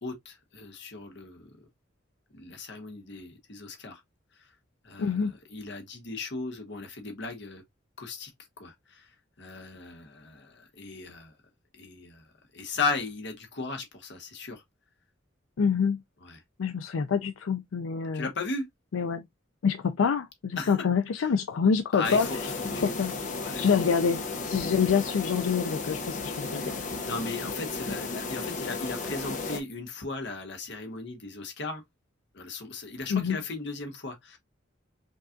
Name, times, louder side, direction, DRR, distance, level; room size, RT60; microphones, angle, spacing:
voice 1, 0.0-1.7 2.3-4.0 4.8-7.6 8.0-8.3 8.6-9.1 9.4-11.3 11.7-12.3 12.5-14.6 16.2-16.4 18.1-18.7 20.6-20.7 21.2-21.3 21.9-22.4 22.7-23.7 26.5-31.8 32.3-34.4, left 3 dB, 60° left, 1.1 m, -37 dB
voice 2, 5.0-5.3 15.6-16.0 16.6-18.3 18.9-19.2 19.6-22.3 22.8-23.1 23.6-26.6 33.1-33.4, left 6 dB, 90° left, 0.4 m, -26 dB
sound 1, 22.0-29.6, left 3 dB, 40° left, 0.7 m, -34 dB
5.3 x 2.4 x 2.5 m
head